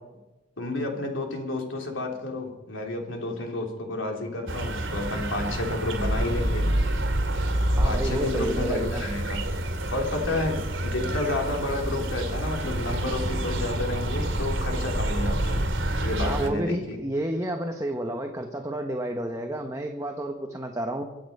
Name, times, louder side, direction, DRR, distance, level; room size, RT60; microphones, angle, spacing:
voice 1, 0.6-6.7 7.8-9.4 9.9-15.6 16.0-17.0, left 2 dB, 80° left, 1 dB, 3.3 m, -30 dB
sound 1, 4.5-16.5, right 1 dB, 80° right, 2.4 m, -28 dB
voice 2, 7.7-9.0 16.2-21.0, right 1 dB, 15° right, 3 dB, 1.0 m, -30 dB
23.5 x 8.7 x 5.5 m, 1.1 s
head